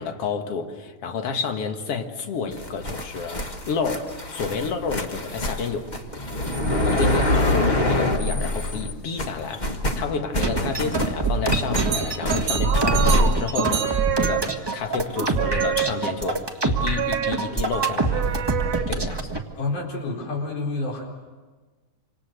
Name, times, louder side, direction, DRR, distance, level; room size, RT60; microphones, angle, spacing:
voice 1, 0.0-5.9 6.7-18.5 18.7-19.4, left 5 dB, 50° left, 2.6 m, -30 dB
sound 1, 2.5-8.9 9.2-13.3, left 1 dB, 30° left, 0.7 m, -25 dB
sound 2, 10.4-19.4, right 3 dB, 15° right, 0.7 m, -25 dB
sound 3, 11.7-14.8 15.2-16.2 16.8-19.2, right 10 dB, 80° right, 2.8 m, -28 dB
voice 2, 19.6-21.1, left 3 dB, 85° left, 5.8 m, -28 dB
27.0 x 26.5 x 6.7 m
omnidirectional pair, 3.5 m